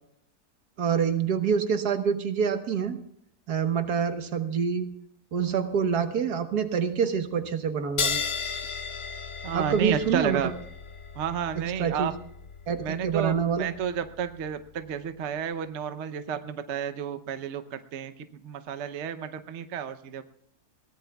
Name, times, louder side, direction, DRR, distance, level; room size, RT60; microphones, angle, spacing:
voice 1, 0.8-3.0 3.5-4.9 5.3-8.2 9.5-10.5 11.5-12.1 12.7-13.7, right 7 dB, 80° right, 8 dB, 1.7 m, -26 dB
sound 1, 8.0-15.0, left 5 dB, 45° left, 1.1 m, -35 dB
voice 2, 9.4-10.5 11.2-12.1 12.8-18.1 18.4-20.2, right 8 dB, 55° right, 10 dB, 1.0 m, -31 dB
22.0 x 18.0 x 2.3 m, 0.72 s
omnidirectional pair, 1.7 m